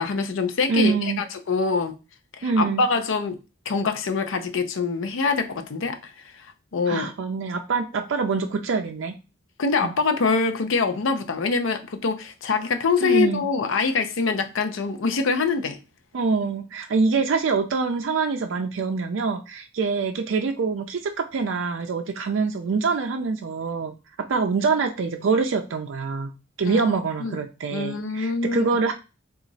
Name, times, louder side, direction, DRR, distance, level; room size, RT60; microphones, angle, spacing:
voice 1, 0.0-1.9 2.4-3.4 3.7-6.1 6.7-7.1 9.6-15.8 26.6-26.9 27.2-27.4 27.7-28.7, left 4 dB, 75° left, 0.5 m, -24 dB
voice 2, 0.7-1.2 2.4-2.8 6.9-9.1 9.8-10.0 13.0-13.4 16.1-23.9 24.3-26.3 26.6-28.9, right 4 dB, 70° right, 0.4 m, -25 dB
2.9 x 2.4 x 3.9 m
head